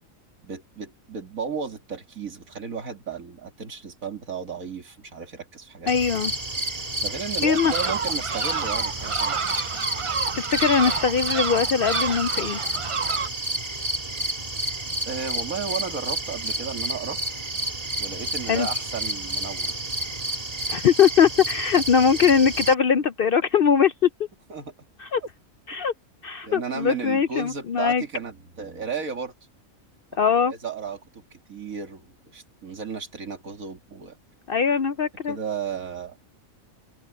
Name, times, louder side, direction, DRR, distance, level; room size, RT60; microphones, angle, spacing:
voice 1, 0.4-6.3 7.0-9.4 15.0-17.2 18.0-19.8 24.5-24.7 25.2-25.3 26.4-29.3 30.1-30.2 30.5-34.2 35.3-36.2, right 6 dB, 80° right, 2.7 m, -34 dB
voice 2, 5.9-6.3 7.4-7.7 10.4-12.6 18.5-18.7 20.7-24.1 25.0-25.2 25.7-25.9 26.2-28.0 30.2-30.5 34.5-35.4, left 7 dB, 60° left, 0.6 m, -21 dB
sound 1, 5.9-22.7, right 1 dB, 30° right, 1.9 m, -30 dB
sound 2, 7.5-13.3, right 6 dB, 50° right, 0.3 m, -29 dB
omnidirectional pair, 1.4 m